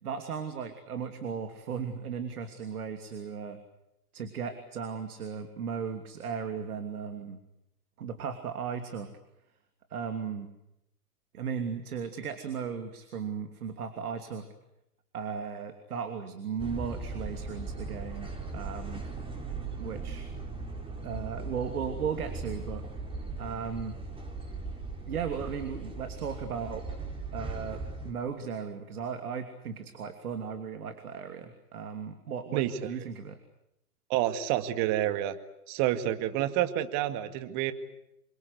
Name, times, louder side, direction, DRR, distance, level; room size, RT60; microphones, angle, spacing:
voice 1, 0.0-3.6 4.1-7.4 8.0-9.1 9.9-10.5 11.3-14.5 15.1-19.0 19.8-20.3 21.0-22.8 23.4-24.0 25.1-26.8 27.3-33.4, right 6 dB, 65° right, 8 dB, 3.0 m, -36 dB
sound 1, 16.6-28.1, right 3 dB, 10° right, 5.1 m, -38 dB
voice 2, 32.5-32.9 34.1-35.4 35.7-37.7, right 13 dB, 35° right, 10 dB, 2.2 m, -28 dB
27.5 x 24.0 x 8.2 m, 0.83 s
figure-of-eight pair, 110°, 47 cm